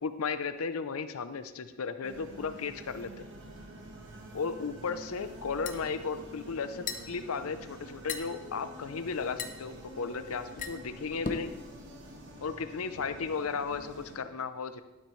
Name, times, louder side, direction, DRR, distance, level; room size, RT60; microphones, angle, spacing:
voice 1, 0.0-3.1 4.3-11.5 12.4-14.8, left 5 dB, 80° left, 11 dB, 0.6 m, -35 dB
sound 1, 2.0-14.2, right 1 dB, 60° right, 1.4 m, -47 dB
sound 2, 5.3-11.6, left 5 dB, 40° left, 0.7 m, -40 dB
12.5 x 7.8 x 3.2 m, 1.1 s
head